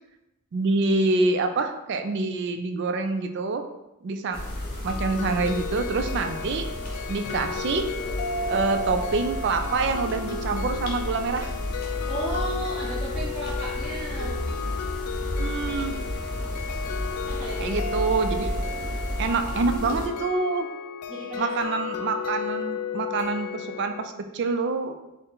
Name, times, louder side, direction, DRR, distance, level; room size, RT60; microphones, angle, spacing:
voice 1, 0.5-3.6 4.0-4.4 4.8-6.7 7.1-7.9 8.5-11.5 15.4-15.9 17.6-18.5 19.2-20.7 21.4-24.9, right 3 dB, 50° right, 7 dB, 0.3 m, -26 dB
sound 1, 4.3-20.1, left 1 dB, 45° left, 0.8 m, -32 dB
sound 2, 4.9-24.1, left 5 dB, 90° left, 0.3 m, -34 dB
voice 2, 12.1-14.4 17.3-17.8 21.1-21.7, right 2 dB, ahead, -12 dB, 0.8 m, -34 dB
4.1 x 2.1 x 3.8 m, 0.94 s
head